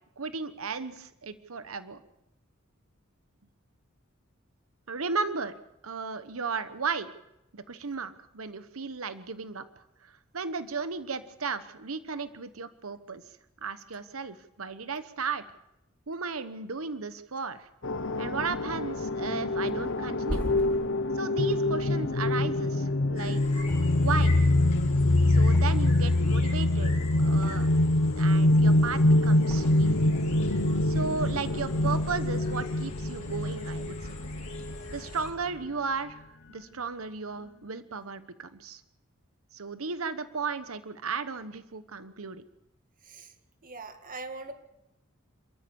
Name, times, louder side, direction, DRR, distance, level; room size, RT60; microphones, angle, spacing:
voice 1, 0.2-2.0 4.9-5.5 5.8-7.1 7.5-9.6 10.0-13.2 13.6-15.4 16.1-17.7 18.2-20.5 21.1-23.7 24.0-24.3 25.3-26.9 27.2-27.7 28.0-30.1 30.8-34.1 34.9-36.2 36.5-38.8 39.5-42.4, right 5 dB, 85° right, 13 dB, 1.1 m, -35 dB
sound 1, 17.8-35.0, left 1 dB, 65° left, 1.0 m, -25 dB
Thump thud, 19.9-23.1 23.6-24.4 24.6-26.1 26.4-28.0 28.3-28.9 29.4-30.4 30.8-31.0, equal, 5° left, 4.3 m, -41 dB
sound 2, 23.2-35.3, left 2 dB, 35° left, 4.0 m, -44 dB
voice 2, 43.6-44.5, right 3 dB, 40° right, 7 dB, 1.9 m, -41 dB
27.0 x 14.0 x 7.0 m, 0.87 s
head